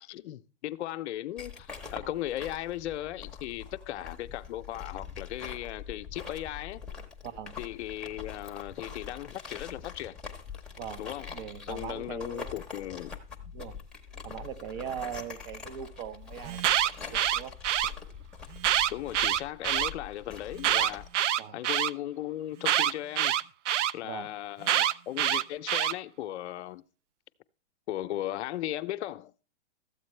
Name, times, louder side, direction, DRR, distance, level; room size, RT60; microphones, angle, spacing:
voice 1, 0.0-6.8 7.6-10.2 11.0-11.4 11.7-13.1 18.9-21.1 21.5-23.3 23.9-26.8 27.9-29.3, left 13 dB, 70° left, 0.7 m, -37 dB
sound 1, 1.4-21.1, left 6 dB, ahead, 0.8 m, -44 dB
voice 2, 7.2-7.6 10.8-11.0 11.3-12.6 13.5-13.7 14.2-17.5 21.4-21.6 24.0-24.3, right 9 dB, 50° right, 1.0 m, -40 dB
Alarm, 16.4-17.9 18.6-19.9 20.6-21.9 22.6-23.9 24.6-25.9, right 11 dB, 80° right, 0.5 m, -26 dB
13.5 x 8.0 x 3.2 m
hypercardioid pair, 135°, 35 cm